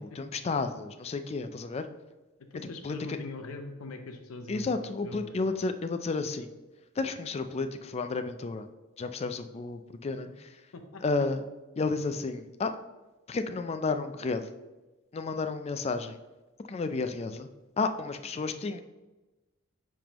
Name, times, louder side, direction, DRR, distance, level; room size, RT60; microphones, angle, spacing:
voice 1, 0.0-1.9 2.8-3.2 4.5-6.5 7.0-8.7 9.0-10.6 11.0-11.4 11.8-12.8 13.3-14.5 15.1-16.2 16.7-17.5 17.8-18.8, left 3 dB, 30° left, 9 dB, 0.3 m, -32 dB
voice 2, 2.5-5.6 10.7-11.0, left 2 dB, 85° left, 6 dB, 0.6 m, -42 dB
9.8 x 3.7 x 2.9 m, 1.1 s
head